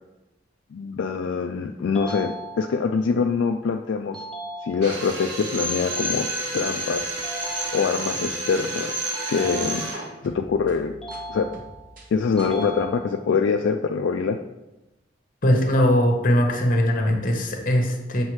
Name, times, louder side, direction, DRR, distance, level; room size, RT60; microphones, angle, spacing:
voice 1, 0.7-4.2 4.6-6.3 6.5-7.2 7.7-9.0 9.3-9.9 10.2-10.9 11.3-11.5 12.1-14.4, left 5 dB, 70° left, 4 dB, 0.3 m, -24 dB
sound 1, 1.9-3.0 4.1-5.1 7.2-8.2 9.1-10.2 11.0-11.9 12.4-13.4, right 1 dB, 5° left, 0.9 m, -37 dB
Drill, 4.8-10.1, right 1 dB, 65° right, 1.4 m, -30 dB
sound 2, 7.0-8.7 9.4-9.9 10.2-12.8, equal, 45° right, 1.0 m, -47 dB
voice 2, 15.4-18.2, equal, 45° left, 3 dB, 1.0 m, -20 dB
7.2 x 5.2 x 3.2 m, 0.98 s
head